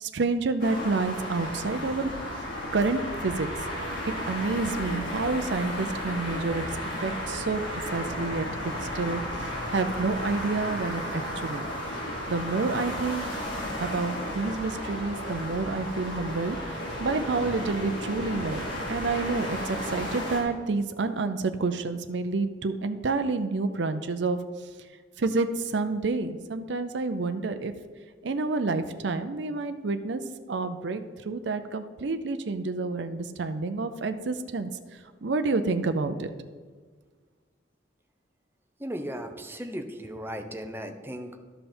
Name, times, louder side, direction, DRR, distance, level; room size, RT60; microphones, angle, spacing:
voice 1, 0.0-2.1 2.7-3.5 4.0-6.6 7.0-11.7 12.3-13.2 13.8-24.4 25.2-27.7 28.2-30.2 30.5-36.3, right 3 dB, 65° right, 9 dB, 0.5 m, -29 dB
sound 1, 0.6-20.4, equal, 85° left, 3.1 m, -34 dB
voice 2, 38.8-41.4, equal, 10° right, 5 dB, 0.7 m, -36 dB
12.0 x 5.6 x 4.4 m, 1.5 s
head